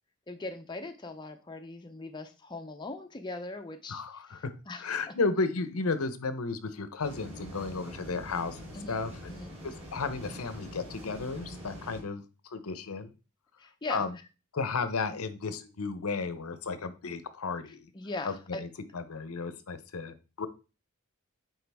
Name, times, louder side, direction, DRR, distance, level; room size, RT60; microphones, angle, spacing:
voice 1, 0.3-5.1 8.7-9.0 9.3-9.5 13.6-14.1 17.9-18.6, left 2 dB, 20° left, 6 dB, 0.5 m, -40 dB
voice 2, 3.9-4.5 4.8-9.3 9.6-13.1 13.9-14.2 14.5-17.9 18.2-20.5, left 4 dB, 75° left, 12 dB, 0.7 m, -34 dB
sound 1, 7.0-12.0, equal, 25° right, 3.6 m, -44 dB
9.0 x 3.8 x 3.4 m, 0.33 s
head